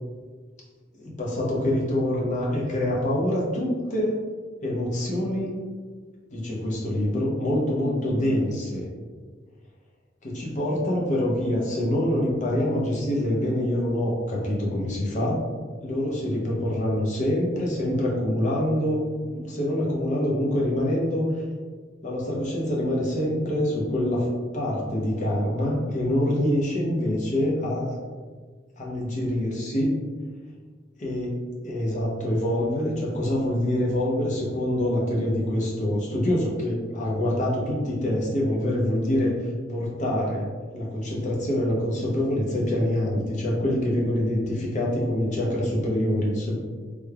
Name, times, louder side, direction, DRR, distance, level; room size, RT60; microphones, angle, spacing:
voice 1, 0.9-4.2 4.6-5.5 6.3-8.9 10.2-15.4 15.8-21.3 22.0-27.9 28.8-29.9 31.0-40.5 40.7-46.6, left 1 dB, 40° left, -3 dB, 0.7 m, -25 dB
3.4 x 3.3 x 2.2 m, 1.5 s
head